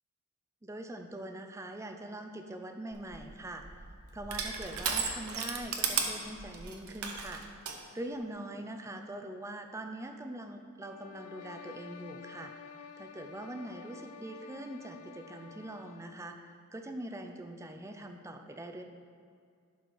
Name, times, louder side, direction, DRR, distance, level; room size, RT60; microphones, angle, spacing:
voice 1, 0.6-3.8 4.1-7.4 7.9-12.5 13.0-18.8, right 1 dB, 15° right, 5 dB, 0.4 m, -43 dB
Crushing, 2.9-7.8, right 6 dB, 75° right, 0.8 m, -35 dB
sound 1, 10.8-16.2, left 7 dB, 85° left, 0.4 m, -50 dB
11.0 x 4.3 x 4.7 m, 2.2 s
head